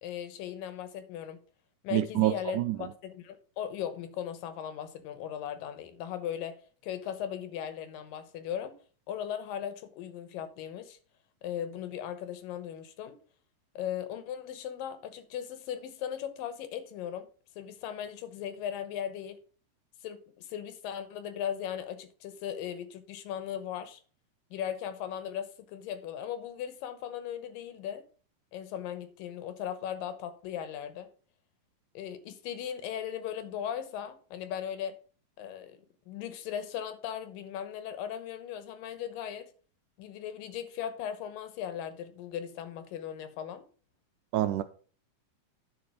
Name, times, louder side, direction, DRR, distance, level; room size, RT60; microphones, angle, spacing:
voice 1, 0.0-1.4 1.8-8.8 9.1-11.0 11.4-13.2 13.8-17.3 17.6-19.4 20.0-24.0 24.5-28.0 28.5-31.1 31.9-35.0 35.4-35.8 36.1-39.5 40.0-43.7, left 9 dB, 80° left, 2.7 m, -38 dB
voice 2, 1.9-2.9 44.3-44.6, right 14 dB, 80° right, 1.9 m, -27 dB
10.5 x 5.7 x 4.9 m
omnidirectional pair, 3.9 m